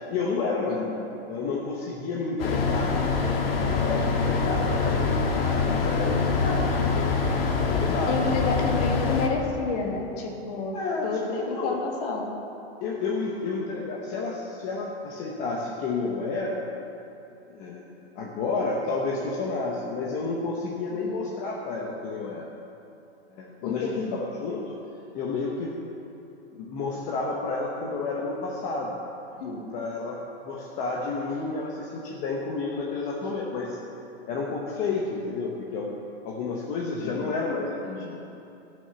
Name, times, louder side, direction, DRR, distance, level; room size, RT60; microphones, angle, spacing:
voice 1, 0.1-1.0 1.3-3.0 3.6-7.1 7.7-8.3 10.7-11.1 11.4-11.8 12.8-16.7 17.5-17.9 18.2-22.5 23.3-24.8 25.1-25.8 26.5-29.0 29.4-30.2 30.4-33.8 34.2-35.9 36.2-38.2, left 3 dB, 25° left, -2 dB, 0.9 m, -30 dB
voice 2, 0.7-1.0 8.1-10.8 11.0-12.3 20.9-21.2 23.6-24.2 29.4-29.7 37.0-37.4, left 3 dB, 40° left, 1 dB, 1.8 m, -30 dB
sound 1, 2.4-9.3, left 4 dB, 65° left, 1.7 m, -25 dB
14.0 x 6.3 x 6.8 m, 2.8 s
hypercardioid pair, 160°, 32 cm